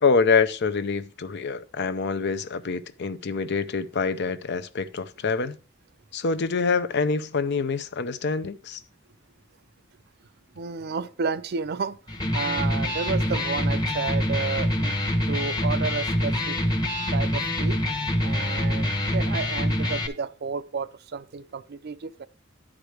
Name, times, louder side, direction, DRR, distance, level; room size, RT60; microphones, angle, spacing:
voice 1, 0.0-5.6 6.1-8.8, left 4 dB, 55° left, 0.6 m, -25 dB
voice 2, 10.6-12.0 12.3-14.9 15.3-16.6 17.1-17.8 18.2-22.3, right 5 dB, 50° right, 0.5 m, -31 dB
Electric guitar, 12.1-20.1, left 1 dB, 20° left, 1.0 m, -25 dB
10.5 x 4.9 x 4.9 m
head